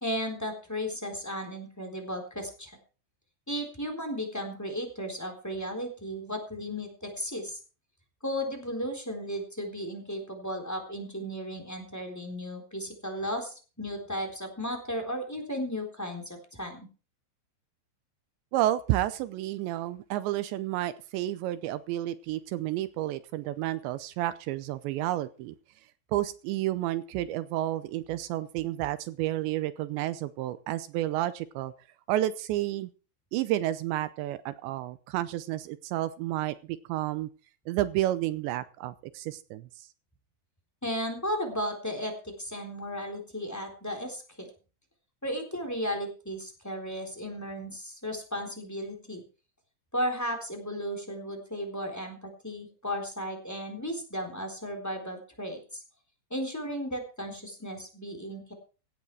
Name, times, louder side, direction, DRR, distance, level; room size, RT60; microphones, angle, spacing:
voice 1, 0.0-2.7 3.5-7.6 8.2-16.9 40.8-44.5 45.2-49.2 49.9-55.8 56.3-58.5, equal, 5° left, 3 dB, 3.1 m, -35 dB
voice 2, 18.5-25.5 26.1-31.7 32.1-32.9 33.3-37.3 37.7-39.9, right 14 dB, 80° right, 14 dB, 2.9 m, -31 dB
17.0 x 10.5 x 4.7 m, 0.36 s
omnidirectional pair, 5.4 m